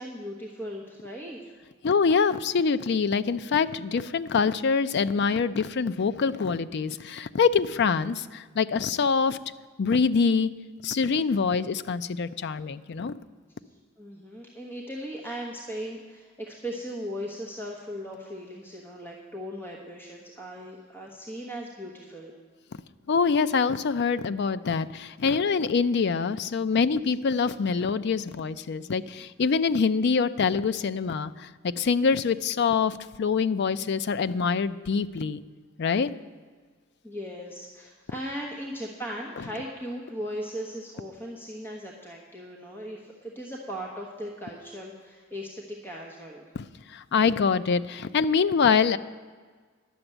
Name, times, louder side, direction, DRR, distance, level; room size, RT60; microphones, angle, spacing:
voice 1, 0.0-1.5 14.0-22.3 37.0-46.4, equal, 10° left, -2 dB, 1.2 m, -38 dB
voice 2, 1.8-9.4 9.8-10.5 10.8-13.2 23.1-35.4 35.8-36.1 46.6-49.0, left 5 dB, 55° left, 14 dB, 0.4 m, -25 dB
11.0 x 7.0 x 8.9 m, 1.5 s
head